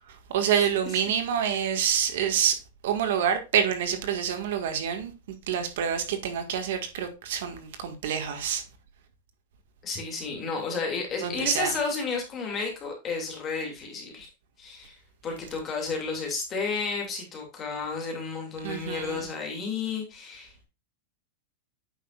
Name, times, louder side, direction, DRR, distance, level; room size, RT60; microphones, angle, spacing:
voice 1, 0.3-5.1 5.5-8.6 11.2-11.7 18.6-19.3, right 8 dB, 65° right, 1.8 m, -27 dB
voice 2, 9.8-14.3 14.6-15.0 15.2-20.5, left 4 dB, 20° left, 2.5 m, -32 dB
9.0 x 6.3 x 2.4 m
supercardioid pair, 175°, 0 cm